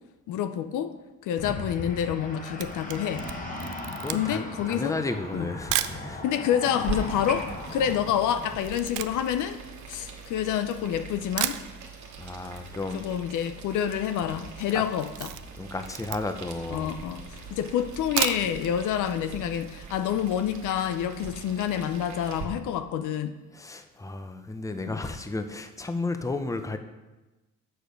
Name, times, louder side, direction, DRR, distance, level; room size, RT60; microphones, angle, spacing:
voice 1, 0.3-0.9 1.2-3.3 4.1-5.0 5.3-5.5 6.2-9.6 9.9-11.6 12.9-15.4 16.7-23.4 24.9-25.0, left 9 dB, 85° left, 9 dB, 0.6 m, -28 dB
sound 1, 1.4-8.6, left 2 dB, 25° left, 1.5 m, -38 dB
Camera, 2.2-6.0 6.7-6.8 7.0-10.7 11.1-11.2 11.4-12.2 12.5-12.6 12.9-13.0 13.2-13.6 13.9-14.2 14.5-16.5 17.0-17.1 17.9-18.7 19.1-19.2 19.5-19.6, right 13 dB, 85° right, 0.5 m, -34 dB
voice 2, 3.6-6.2 12.2-13.0 14.7-14.8 15.6-16.9 23.5-26.8, left 2 dB, 10° left, 8 dB, 0.7 m, -33 dB
Boiling, 6.8-22.4, right 5 dB, 70° right, 1.3 m, -42 dB
6.8 x 6.6 x 5.2 m, 1.1 s
cardioid pair, 90°, 30 cm